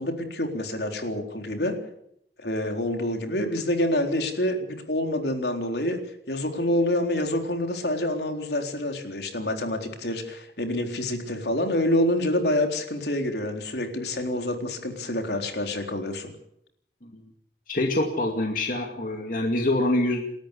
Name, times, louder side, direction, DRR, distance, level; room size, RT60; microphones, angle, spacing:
voice 1, 0.0-1.8 2.4-6.0 6.3-16.3, left 1 dB, 70° left, 4 dB, 3.9 m, -27 dB
voice 2, 17.7-20.2, left 1 dB, 50° left, 2 dB, 2.5 m, -25 dB
29.5 x 13.5 x 8.4 m, 0.73 s
head